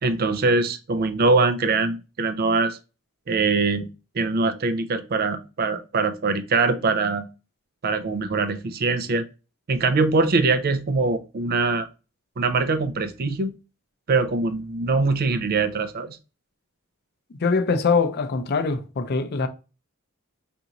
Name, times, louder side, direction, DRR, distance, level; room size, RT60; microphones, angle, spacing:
voice 1, 0.0-2.8 3.3-3.9 4.1-7.2 7.8-9.2 9.7-11.9 12.4-13.5 14.1-16.2, right 3 dB, 45° right, 0.4 m, -22 dB
voice 2, 17.4-19.5, left 4 dB, 45° left, 0.5 m, -23 dB
4.8 x 2.6 x 2.8 m
head